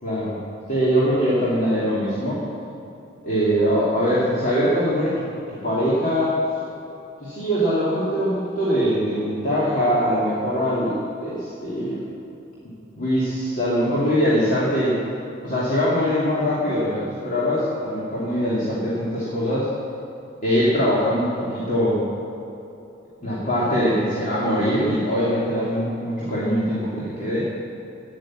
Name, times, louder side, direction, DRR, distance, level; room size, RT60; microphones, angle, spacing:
voice 1, 0.0-0.4 0.7-2.4 3.2-5.2 5.5-6.4 7.2-10.9 11.2-12.0 13.0-15.0 15.4-19.7 20.4-22.0 23.2-27.5, equal, 45° left, -8 dB, 2.8 m, -22 dB
12.0 x 10.0 x 8.8 m, 2.9 s
head